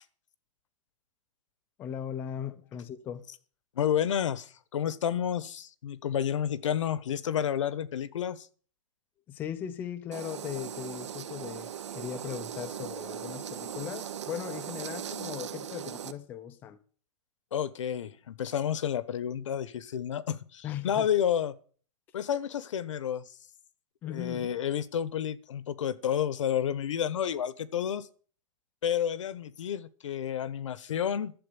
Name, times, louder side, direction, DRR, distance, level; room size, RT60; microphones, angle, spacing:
voice 1, 1.8-3.3 9.3-16.8 20.6-21.1 24.0-24.5, left 9 dB, 10° left, 0.6 m, -38 dB
voice 2, 3.7-8.5 17.5-21.5 22.1-23.3 24.1-28.1 28.8-31.3, left 9 dB, 70° left, 1.2 m, -30 dB
sound 1, 10.1-16.1, right 9 dB, 65° right, 1.4 m, -39 dB
12.0 x 7.9 x 9.7 m
hypercardioid pair, 180°, 16 cm